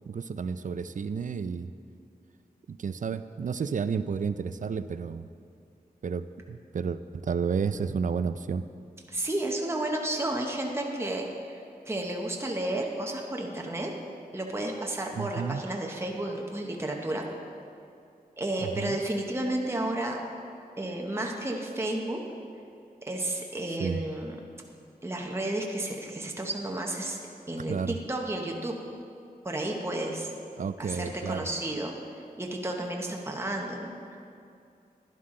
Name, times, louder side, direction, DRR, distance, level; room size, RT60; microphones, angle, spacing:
voice 1, 0.1-1.7 2.7-5.3 6.0-8.6 15.2-15.6 18.6-19.0 23.8-24.0 27.7-28.0 30.6-31.5, right 6 dB, 55° right, 12 dB, 0.4 m, -31 dB
voice 2, 9.1-11.2 11.5-13.9 14.3-17.2 18.4-20.2 20.8-22.2 23.0-24.4 25.0-27.2 27.5-28.7 29.4-30.3 30.8-31.9 32.4-34.2, right 1 dB, 15° right, 0 dB, 0.9 m, -32 dB
11.5 x 10.5 x 3.8 m, 2.5 s
wide cardioid pair, 95°, 16 cm